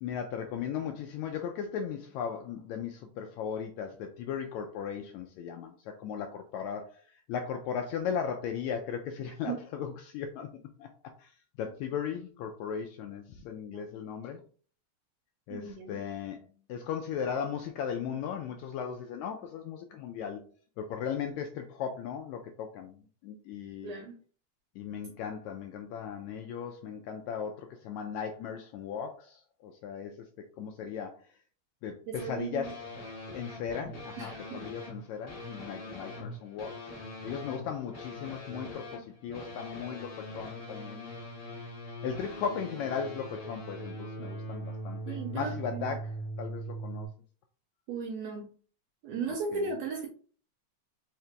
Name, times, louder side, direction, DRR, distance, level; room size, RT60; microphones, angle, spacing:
voice 1, 0.0-7.0 7.3-10.5 10.8-10.9 11.2-11.3 11.6-14.4 15.5-16.4 16.7-20.4 20.8-23.9 24.7-30.3 30.6-31.2 31.8-32.8 33.3-36.9 37.2-41.1 42.0-46.1 46.4-47.1 49.5-49.7, left 7 dB, 80° left, 4 dB, 1.6 m, -37 dB
voice 2, 15.5-16.0 23.8-24.2 32.1-32.7 34.2-34.6 45.0-46.0 47.9-48.5 49.0-50.1, right 5 dB, 80° right, 2 dB, 1.6 m, -36 dB
sound 1, 32.1-47.1, equal, 40° left, 1.4 m, -42 dB
4.9 x 2.8 x 3.3 m, 0.42 s
omnidirectional pair, 3.6 m